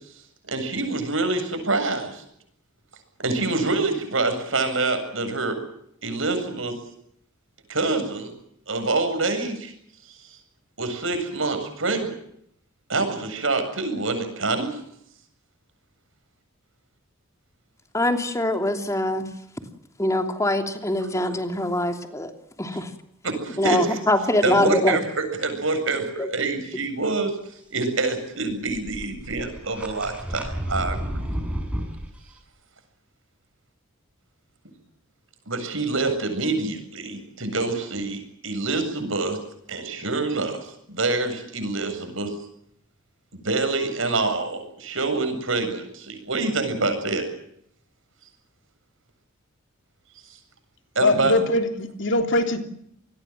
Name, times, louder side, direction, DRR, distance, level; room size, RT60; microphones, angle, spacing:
voice 1, 0.5-2.2 3.2-5.6 6.0-6.7 7.7-8.3 8.7-9.7 10.1-10.2 10.8-12.2 12.9-14.8 21.0-21.1 23.2-24.0 24.4-31.2 35.5-39.4 39.7-42.3 43.3-47.2 50.9-51.3, right 3 dB, 70° right, 7.8 m, -26 dB
voice 2, 17.9-19.2 20.0-22.3 22.6-22.9 23.6-25.0 26.2-26.3, left 1 dB, 15° left, 3.0 m, -23 dB
sound 1, 28.5-32.1, equal, 5° right, 5.9 m, -31 dB
voice 3, 51.0-52.6, left 2 dB, 60° left, 3.2 m, -22 dB
27.5 x 20.5 x 7.6 m
head